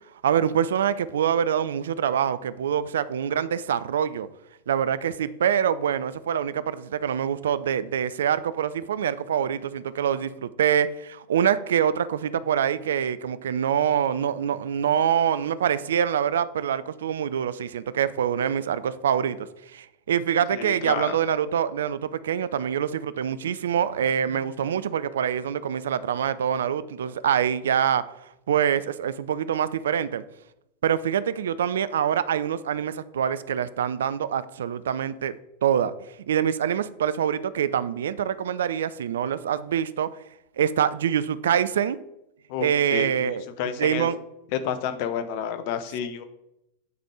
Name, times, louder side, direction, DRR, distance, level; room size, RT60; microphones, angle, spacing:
voice 1, 0.2-4.3 4.7-19.5 19.7-28.0 28.5-30.2 30.8-35.4 35.6-35.9 36.3-40.1 40.6-42.0 42.6-43.5 43.8-44.2, right 9 dB, 60° right, 0.4 m, -25 dB
voice 2, 20.5-21.2 42.5-44.1 44.5-46.2, left 8 dB, 45° left, 0.8 m, -30 dB
9.3 x 4.2 x 4.7 m
figure-of-eight pair, 90°, 0 cm